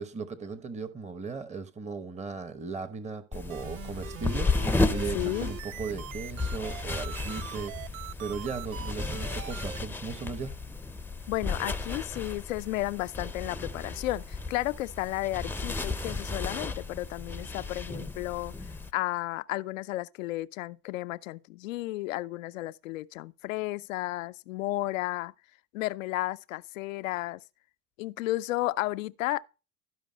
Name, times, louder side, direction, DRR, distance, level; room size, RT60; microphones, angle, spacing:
voice 1, 0.0-7.9 8.2-10.5, right 5 dB, 15° right, 1.0 m, -37 dB
sound 1, 3.3-18.9, left 3 dB, 5° left, 0.7 m, -34 dB
sound 2, 3.5-9.8, right 12 dB, 90° right, 0.5 m, -42 dB
voice 2, 5.1-5.5 11.3-18.5 18.9-25.3 25.7-27.4 28.0-29.4, left 17 dB, 75° left, 0.7 m, -33 dB
13.0 x 5.3 x 5.1 m
hypercardioid pair, 85°, 40 cm